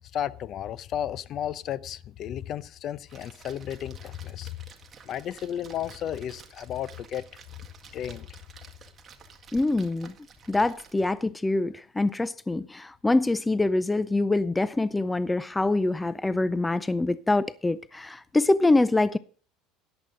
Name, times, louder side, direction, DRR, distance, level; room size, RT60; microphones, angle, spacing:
voice 1, 0.1-4.6 5.0-7.3 7.9-8.3, left 10 dB, 45° left, 0.7 m, -33 dB
Splash splatter, 3.1-11.2, right 6 dB, 25° right, 1.8 m, -51 dB
voice 2, 9.5-10.1 10.5-19.2, left 2 dB, 10° left, 0.5 m, -25 dB
13.5 x 10.5 x 3.9 m
cardioid pair, 135°, 0 cm